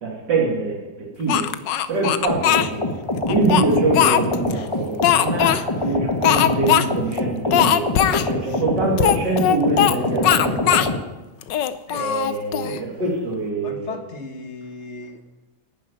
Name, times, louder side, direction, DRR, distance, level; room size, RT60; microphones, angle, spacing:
voice 1, 0.0-1.4 1.9-2.9 3.3-7.9 8.3-10.8 11.9-14.0, right 2 dB, 60° right, -2 dB, 3.5 m, -24 dB
Speech, 1.3-2.7 3.3-4.5 5.0-5.6 6.2-6.9 7.1-7.2 7.5-8.3 9.0-10.0 10.2-10.9 11.4-12.8, left 11 dB, 70° left, 1.3 m, -19 dB
sound 1, 2.3-11.0, left 2 dB, 15° left, 1.4 m, -25 dB
voice 2, 13.6-15.2, left 3 dB, 40° left, 6 dB, 1.6 m, -36 dB
11.5 x 10.0 x 9.0 m, 1.1 s
omnidirectional pair, 2.1 m